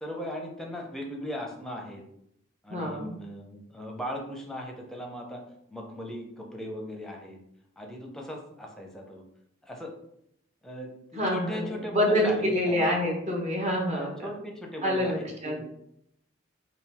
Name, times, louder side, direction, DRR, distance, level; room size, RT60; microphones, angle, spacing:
voice 1, 0.0-2.0 2.6-5.4 5.7-7.4 7.8-9.2 9.6-9.9 10.6-13.0 13.9-15.7, equal, ahead, 0 dB, 0.6 m, -38 dB
voice 2, 2.7-3.1 11.2-14.1 14.8-15.7, equal, 35° right, -1 dB, 0.8 m, -27 dB
3.8 x 2.3 x 4.2 m, 0.74 s
head